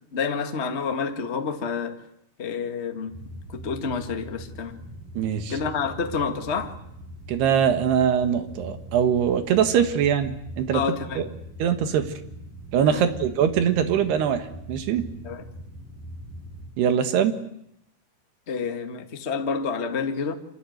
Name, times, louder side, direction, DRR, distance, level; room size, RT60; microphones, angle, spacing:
voice 1, 0.1-2.0 2.4-3.1 3.5-4.8 5.5-6.8 10.7-11.2 12.9-13.0 15.2-15.4 18.5-20.3, left 5 dB, 55° left, 5 dB, 0.7 m, -28 dB
sound 1, 3.1-16.8, right 1 dB, 55° right, 9.7 m, -41 dB
voice 2, 5.2-5.5 7.3-10.8 11.2-11.3 11.6-12.1 12.7-15.1 16.8-17.4, right 8 dB, 85° right, 8 dB, 3.8 m, -22 dB
26.5 x 26.5 x 8.0 m, 0.76 s
omnidirectional pair, 4.5 m